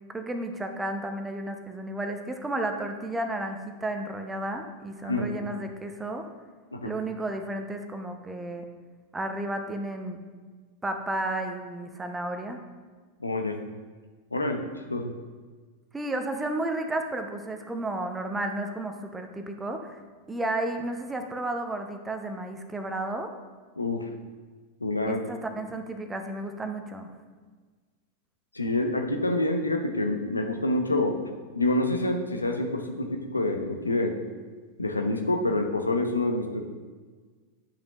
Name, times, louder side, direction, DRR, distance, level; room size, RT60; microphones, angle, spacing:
voice 1, 0.1-6.3 6.8-8.7 9.1-10.2 10.8-12.6 15.9-20.0 20.3-23.3 25.1-27.1, right 1 dB, 10° right, 5 dB, 0.7 m, -32 dB
voice 2, 13.2-13.6 14.3-14.6 14.9-15.1 23.8-24.1 24.8-25.2 28.5-31.2 31.6-34.2 34.8-36.7, left 2 dB, 80° left, 4 dB, 0.7 m, -27 dB
9.9 x 5.2 x 3.0 m, 1.5 s
figure-of-eight pair, 90°, 0 cm